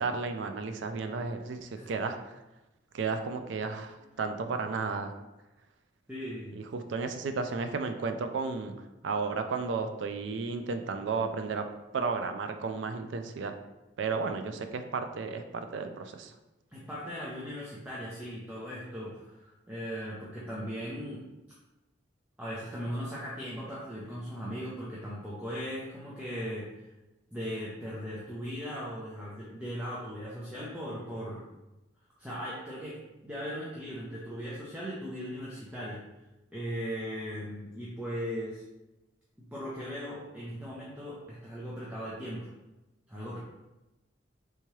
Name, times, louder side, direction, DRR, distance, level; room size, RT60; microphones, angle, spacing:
voice 1, 0.0-2.2 2.9-5.1 6.5-8.7 9.0-11.7 11.9-13.6 14.0-16.3, right 4 dB, 70° right, 7 dB, 0.4 m, -33 dB
voice 2, 6.1-6.6 16.7-21.3 22.4-26.9 27.3-31.5 32.2-33.0 33.2-36.0 36.5-38.6 39.5-42.5 43.1-43.4, equal, 10° right, -7 dB, 0.5 m, -38 dB
3.4 x 2.9 x 3.0 m, 1.0 s
head